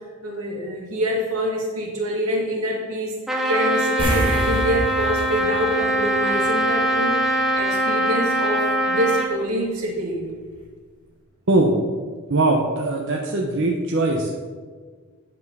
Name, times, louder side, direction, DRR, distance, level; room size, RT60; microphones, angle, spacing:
voice 1, 0.2-3.1 3.5-10.3, equal, 85° right, -2 dB, 2.2 m, -26 dB
Trumpet, 3.3-9.3, right 1 dB, ahead, 0.8 m, -22 dB
sound 1, 4.0-6.8 7.1-7.3 10.1-10.2 10.6-10.7, equal, 20° right, 1.6 m, -27 dB
voice 2, 12.3-14.4, right 2 dB, 55° right, 0 dB, 0.7 m, -21 dB
9.6 x 4.5 x 5.4 m, 1.5 s
head